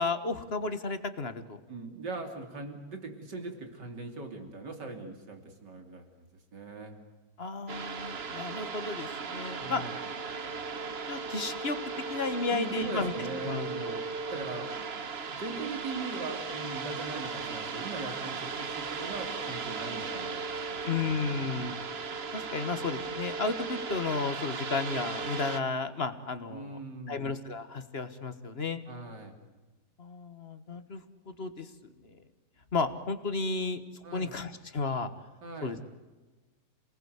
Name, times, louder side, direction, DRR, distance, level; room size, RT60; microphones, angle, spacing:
voice 1, 0.0-1.6 7.4-9.8 11.1-11.8 12.1-13.1 13.4-14.0 20.8-21.8 22.3-26.8 27.1-28.8 30.0-31.7 32.0-32.2 32.7-33.8 34.1-35.1 35.6-35.8, left 4 dB, 40° left, 10 dB, 1.6 m, -33 dB
voice 2, 1.7-6.1 6.5-7.0 9.6-9.9 12.5-13.9 14.3-14.9 15.3-21.8 26.5-27.3 28.9-29.3 34.0-34.3 35.4-35.8, right 3 dB, 90° right, 5 dB, 3.7 m, -41 dB
sound 1, 7.7-25.6, right 4 dB, 40° right, 1.3 m, -37 dB
28.0 x 19.0 x 8.1 m, 1.3 s
omnidirectional pair, 1.8 m